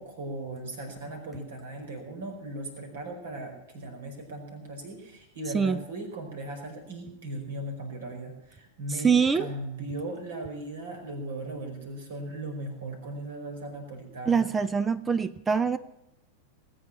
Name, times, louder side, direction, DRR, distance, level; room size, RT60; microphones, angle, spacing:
voice 1, 0.0-14.5, right 1 dB, 60° right, 3 dB, 4.8 m, -38 dB
voice 2, 8.9-9.5 14.2-15.8, right 6 dB, 15° right, 17 dB, 0.6 m, -24 dB
19.5 x 8.8 x 7.3 m, 0.86 s
figure-of-eight pair, 90°, 0 cm